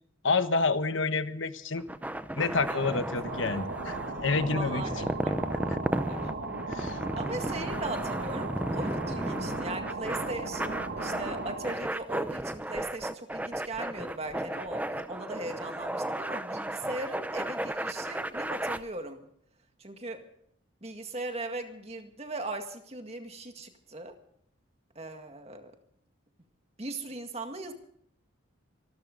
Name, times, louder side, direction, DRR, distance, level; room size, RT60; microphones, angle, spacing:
voice 1, 0.2-1.8 2.3-4.0 4.2-5.1 6.7-7.0, left 3 dB, 70° left, 10 dB, 1.2 m, -28 dB
sound 1, 1.8-18.8, right 1 dB, 10° right, 0.6 m, -34 dB
voice 2, 2.7-3.1 4.5-6.3 7.1-19.2 19.8-20.2 20.8-24.1 25.0-25.7 26.8-27.7, right 2 dB, 30° right, 6 dB, 1.9 m, -39 dB
sound 2, 3.0-11.9, right 3 dB, 70° right, 2.0 m, -37 dB
25.5 x 12.5 x 3.9 m, 0.67 s
head